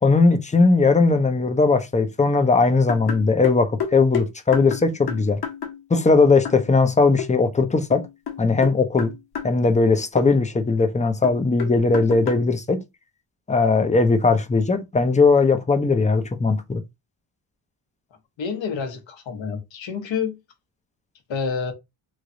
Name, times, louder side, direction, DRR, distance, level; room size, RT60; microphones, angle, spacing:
voice 1, 0.0-5.4 5.9-8.0 8.4-9.1 9.4-12.8 13.5-16.8, left 3 dB, 15° left, 0.6 m, -19 dB
sound 1, 2.9-6.1 6.4-6.7 7.2-7.3 7.9-9.6 10.2-10.3 11.2-12.5, left 7 dB, 55° left, 1.4 m, -30 dB
voice 2, 18.4-20.4 21.3-21.7, left 6 dB, 75° left, 1.2 m, -28 dB
3.2 x 2.2 x 3.8 m
cardioid pair, 85°, 46 cm